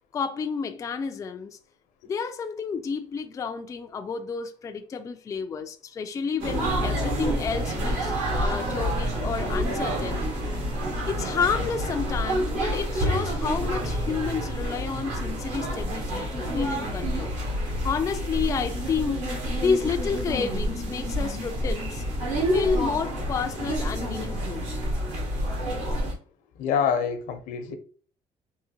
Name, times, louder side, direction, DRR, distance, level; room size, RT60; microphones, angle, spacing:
voice 1, 0.1-1.6 2.1-10.2 11.0-17.3 17.6-22.0 22.5-24.7, left 6 dB, 25° left, 0.3 m, -30 dB
sound 1, 6.4-26.1, equal, 60° right, 1.5 m, -28 dB
voice 2, 26.6-27.7, left 7 dB, 80° left, 0.7 m, -26 dB
3.7 x 2.6 x 2.8 m
cardioid pair, 130°, 13 cm